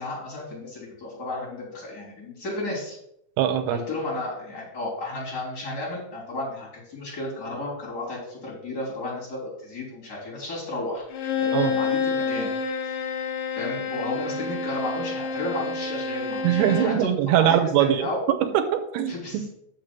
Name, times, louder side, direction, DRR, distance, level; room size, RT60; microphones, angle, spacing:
voice 1, 0.0-3.0 3.7-11.1 11.4-12.5 13.5-18.2 19.1-19.5, left 2 dB, 25° left, -4 dB, 3.6 m, -33 dB
voice 2, 3.4-3.9 11.5-11.7 16.4-19.4, right 10 dB, 85° right, 9 dB, 2.7 m, -22 dB
Bowed string instrument, 11.1-17.0, left 4 dB, 90° left, 1.7 m, -28 dB
6.6 x 6.0 x 6.0 m, 0.77 s
omnidirectional pair, 4.7 m